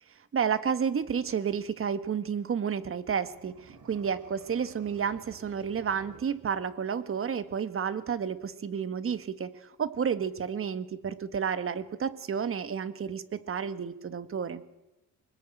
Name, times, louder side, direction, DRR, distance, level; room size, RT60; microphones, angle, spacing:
voice 1, 0.3-9.5 9.8-14.6, right 7 dB, 40° right, 13 dB, 1.7 m, -31 dB
sound 1, 3.1-7.0, right 4 dB, 65° right, 6.1 m, -54 dB
24.5 x 21.0 x 9.2 m, 0.97 s
cardioid pair, 135°, 33 cm